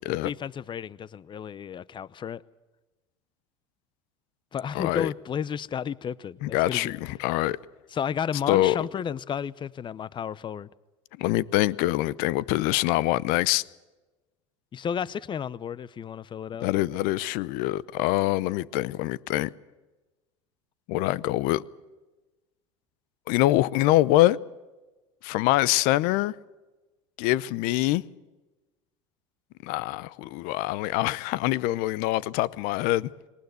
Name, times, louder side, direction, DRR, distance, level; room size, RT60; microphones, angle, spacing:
voice 1, 0.0-2.4 4.5-6.9 7.9-10.7 14.7-16.7, left 8 dB, 30° left, 0.7 m, -32 dB
voice 2, 4.7-5.1 6.4-7.6 8.5-8.8 11.2-13.6 16.6-19.5 20.9-21.6 23.3-24.4 25.2-26.3 27.2-28.0 29.6-33.1, left 17 dB, 65° left, 0.8 m, -24 dB
21.0 x 19.0 x 8.0 m
hypercardioid pair, 90°, 16 cm